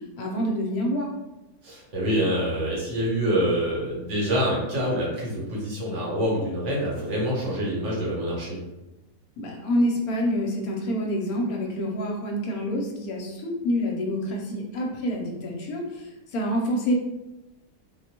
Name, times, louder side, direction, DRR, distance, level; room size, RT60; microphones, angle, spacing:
voice 1, 0.2-1.1 9.4-16.9, equal, 70° left, 0 dB, 1.0 m, -27 dB
voice 2, 1.6-8.6, equal, 50° right, -4 dB, 1.2 m, -26 dB
3.8 x 2.1 x 2.9 m, 0.98 s
omnidirectional pair, 1.8 m